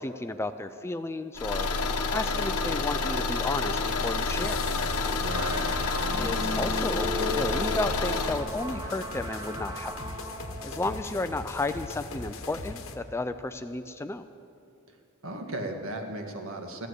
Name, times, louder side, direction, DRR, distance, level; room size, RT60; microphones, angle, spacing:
voice 1, 0.0-1.7 2.1-4.6 6.2-10.0 10.6-14.2, left 2 dB, 10° left, 10 dB, 0.3 m, -33 dB
Car / Engine, 1.4-8.4, left 3 dB, 90° left, 1.1 m, -29 dB
sound 1, 3.8-13.0, left 3 dB, 60° left, 1.1 m, -40 dB
voice 2, 5.2-5.7 15.2-16.9, right 1 dB, 60° right, 3 dB, 1.7 m, -35 dB
sound 2, 5.3-12.1, equal, 15° right, 0.8 m, -37 dB
14.5 x 12.0 x 8.1 m, 2.6 s
head